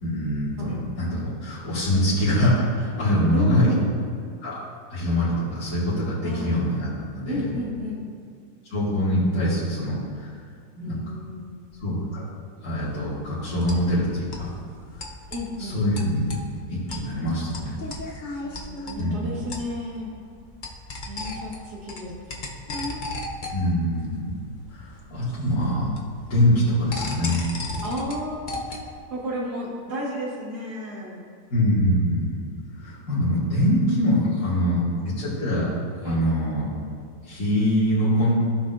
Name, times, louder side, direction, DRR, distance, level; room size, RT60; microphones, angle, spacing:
voice 1, 0.0-3.7 4.4-4.6 4.9-6.9 7.1-7.5 8.7-10.3 10.8-11.0 11.8-12.2 12.6-14.5 15.6-16.3 16.7-17.7 19.0-19.4 23.5-24.3 24.7-25.9 26.3-27.4 31.5-32.4 32.8-35.7 36.0-36.6 37.2-38.4, equal, 65° left, -11 dB, 2.6 m, -24 dB
voice 2, 3.3-3.9 6.2-6.5 7.3-8.0 10.8-11.7 15.3-15.8 18.4-20.1 21.1-22.4 27.8-31.2 34.4-34.9 36.0-36.2, equal, 75° right, -4 dB, 2.3 m, -33 dB
sound 1, 12.8-29.0, left 2 dB, 40° left, 0.7 m, -37 dB
15.0 x 5.9 x 2.6 m, 2.2 s
omnidirectional pair, 1.7 m